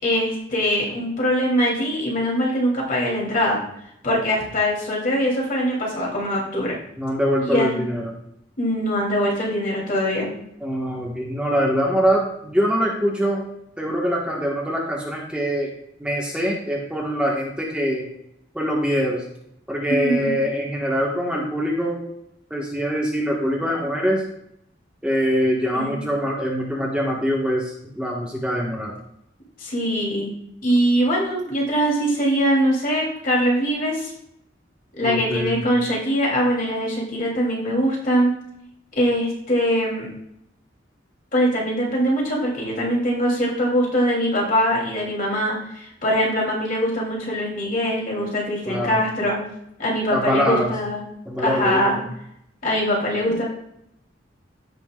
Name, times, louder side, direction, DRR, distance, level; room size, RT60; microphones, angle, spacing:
voice 1, 0.0-3.6 4.0-6.8 7.4-7.8 8.6-10.3 19.9-20.3 25.7-26.0 29.6-30.3 30.6-34.1 35.0-38.3 38.9-40.1 41.3-49.4 49.8-51.0 51.4-52.0 52.6-53.4, equal, 45° left, -4 dB, 3.1 m, -22 dB
voice 2, 7.0-8.1 10.6-13.5 13.8-15.7 16.0-18.1 18.5-19.2 19.7-22.0 22.5-24.2 25.0-28.9 35.0-35.6 48.7-49.0 50.1-50.7 51.2-51.9, equal, 5° right, -3 dB, 1.5 m, -23 dB
16.0 x 5.8 x 2.4 m, 0.75 s
head